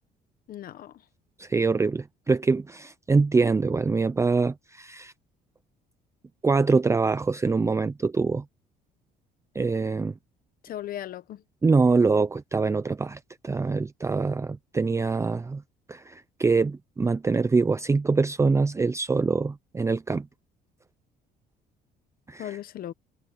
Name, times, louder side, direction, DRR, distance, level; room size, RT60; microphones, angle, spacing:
voice 1, 0.5-1.0 10.6-11.4 22.4-22.9, left 12 dB, 60° left, 1.1 m, -37 dB
voice 2, 1.4-5.1 6.4-8.4 9.6-10.1 11.6-15.6 15.9-20.3 22.3-22.5, right 4 dB, 15° right, 0.5 m, -24 dB
cardioid pair, 110°, 17 cm